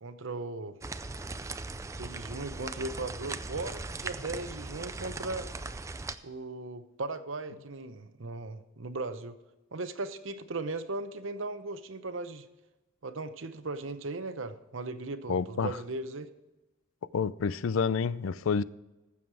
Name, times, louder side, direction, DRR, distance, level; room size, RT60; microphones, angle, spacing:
voice 1, 0.0-0.8 1.9-5.5 6.2-9.4 9.7-12.5 13.0-16.3, right 2 dB, 70° right, 0.8 m, -37 dB
sound 1, 0.8-6.1, right 3 dB, 15° right, 0.4 m, -39 dB
voice 2, 15.3-15.7 17.1-18.6, left 5 dB, 80° left, 0.4 m, -28 dB
15.0 x 7.2 x 4.8 m
head